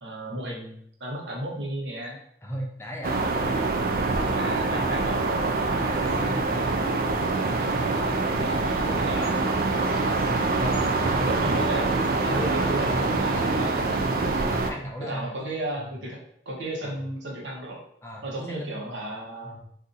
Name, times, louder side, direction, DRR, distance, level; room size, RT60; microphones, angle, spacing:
voice 1, 0.0-2.2 4.2-5.3 8.4-9.9 11.3-14.0 15.1-16.2 16.4-17.8 18.2-19.5, right 1 dB, 85° right, -2 dB, 1.0 m, -34 dB
voice 2, 2.4-3.2 5.7-7.1 10.3-12.1 13.2-15.5 15.8-15.9 16.8-17.0 18.0-18.8 19.4-19.6, equal, 15° left, 0 dB, 0.4 m, -38 dB
sound 1, 3.0-14.7, right 3 dB, 50° right, 0.3 m, -25 dB
2.6 x 2.5 x 3.8 m, 0.70 s
head